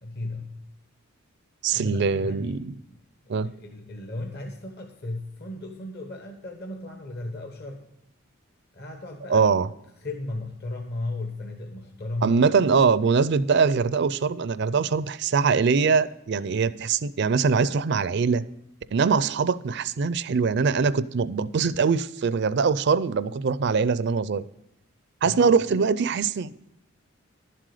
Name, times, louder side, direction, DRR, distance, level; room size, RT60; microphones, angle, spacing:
voice 1, 0.0-0.6 1.7-3.0 3.2-7.8 8.7-9.5 10.0-12.4 25.2-25.5, left 2 dB, 50° left, 1.1 m, -35 dB
voice 2, 1.6-2.7 3.3-3.5 9.3-9.7 12.2-18.4 18.9-24.4 25.2-26.5, right 5 dB, 55° right, 0.4 m, -22 dB
11.0 x 7.6 x 4.9 m
head